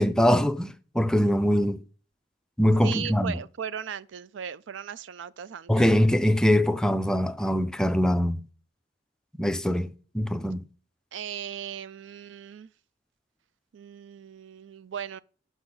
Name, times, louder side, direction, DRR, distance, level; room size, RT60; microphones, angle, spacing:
voice 1, 0.0-1.8 2.6-3.4 5.7-8.5 9.4-10.6, equal, 5° left, 0.4 m, -23 dB
voice 2, 2.8-5.9 11.1-12.7 13.7-15.2, right 8 dB, 80° right, 0.4 m, -37 dB
7.2 x 6.1 x 3.8 m
head